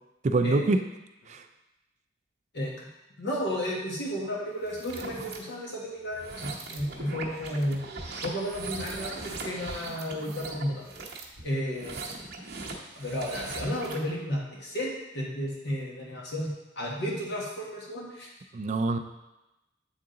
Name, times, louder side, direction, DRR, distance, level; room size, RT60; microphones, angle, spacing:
voice 1, 0.2-0.8 1.3-1.4 18.5-19.0, right 3 dB, 35° right, 8 dB, 0.3 m, -25 dB
voice 2, 2.5-2.9 3.2-7.8 8.2-10.8 11.4-12.0 12.9-18.3, equal, 60° left, -3 dB, 1.5 m, -33 dB
sound 1, 4.7-5.4 6.1-14.1, right 3 dB, 55° right, 0.9 m, -40 dB
8.0 x 3.7 x 3.8 m, 0.97 s
head